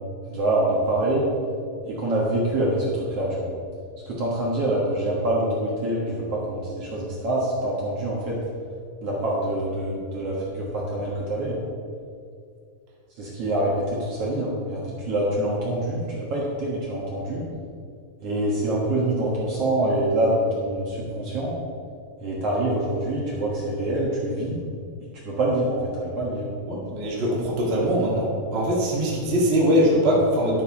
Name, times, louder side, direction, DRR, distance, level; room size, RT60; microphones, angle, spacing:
voice 1, 0.3-1.3 1.9-3.5 4.1-8.4 9.0-11.6 13.2-17.4 18.2-21.5 22.2-24.6 25.2-26.5, right 1 dB, 55° right, -5 dB, 2.1 m, -25 dB
voice 2, 26.7-30.6, equal, 25° right, -4 dB, 1.4 m, -22 dB
11.5 x 5.4 x 5.6 m, 2.3 s
omnidirectional pair, 4.1 m